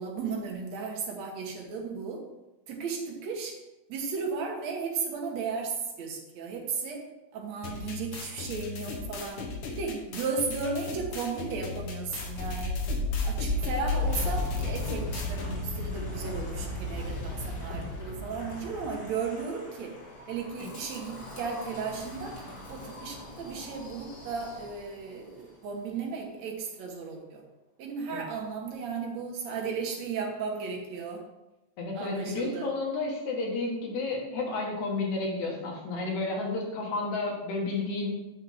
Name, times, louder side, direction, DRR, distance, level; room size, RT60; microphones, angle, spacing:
voice 1, 0.0-2.2 2.7-3.5 3.9-7.0 7.3-9.4 9.7-12.8 13.2-19.9 20.3-22.4 22.7-27.4 27.8-31.2 31.9-32.7, right 5 dB, 70° right, 1 dB, 2.4 m, -35 dB
sound 1, 7.6-15.6, left 4 dB, 60° left, 1.6 m, -39 dB
Wind, 12.2-25.1, left 2 dB, 40° left, 1.9 m, -35 dB
voice 2, 31.8-38.3, left 3 dB, 75° left, -1 dB, 2.9 m, -31 dB
8.2 x 6.5 x 3.4 m, 0.99 s
omnidirectional pair, 3.3 m